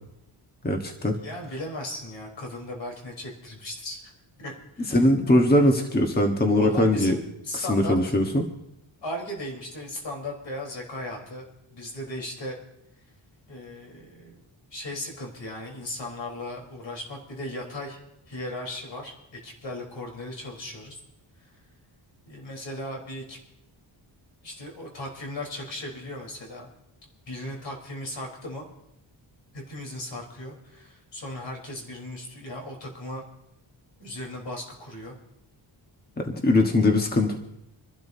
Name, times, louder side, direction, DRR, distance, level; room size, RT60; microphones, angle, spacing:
voice 1, 0.6-1.2 4.9-7.2 7.5-8.5 36.2-37.4, left 1 dB, 20° left, 2 dB, 1.3 m, -21 dB
voice 2, 1.2-4.1 4.4-5.0 6.5-8.1 9.0-12.6 13.5-14.4 14.7-18.0 18.3-21.0 21.4-21.5 22.3-23.4 24.4-26.7 27.3-28.7 29.7-33.2 34.0-35.1, left 1 dB, 70° left, 0 dB, 4.0 m, -37 dB
27.0 x 12.0 x 2.7 m, 0.84 s
wide cardioid pair, 115°, 46 cm